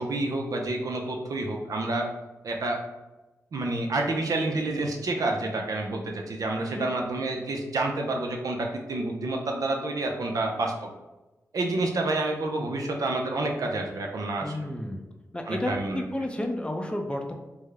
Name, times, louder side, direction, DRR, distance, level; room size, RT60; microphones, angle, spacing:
voice 1, 0.0-2.1 2.4-2.8 3.5-10.9 11.5-14.7 15.5-16.0, right 2 dB, 75° right, 2 dB, 0.5 m, -29 dB
voice 2, 14.4-15.0 15.3-17.3, left 1 dB, 15° left, 3 dB, 0.5 m, -31 dB
3.5 x 2.1 x 3.2 m, 1.1 s
cardioid pair, 70°, 6 cm